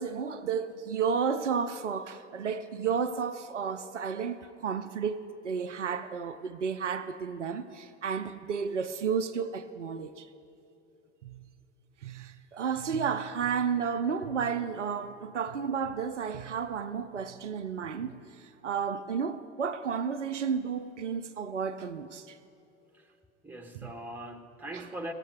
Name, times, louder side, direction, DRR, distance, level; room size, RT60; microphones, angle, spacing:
voice 1, 0.0-10.3 11.2-11.4 12.0-18.2 18.6-22.4, right 6 dB, 85° right, 0.5 m, -32 dB
voice 2, 23.4-25.1, right 1 dB, 5° right, 1.0 m, -41 dB
16.5 x 7.4 x 5.3 m
figure-of-eight pair, 70°, 35 cm